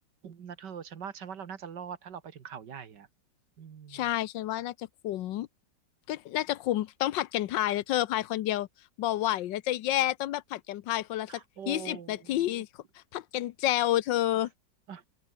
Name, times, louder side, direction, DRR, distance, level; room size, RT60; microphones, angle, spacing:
voice 1, 0.2-3.1 3.6-4.1 11.3-12.6 14.9-15.0, right 7 dB, 70° right, 2.2 m, -43 dB
voice 2, 3.9-5.5 6.1-8.7 9.0-11.4 11.7-12.7 12.9-14.5, left 13 dB, 90° left, 1.5 m, -29 dB
open air
omnidirectional pair, 1.9 m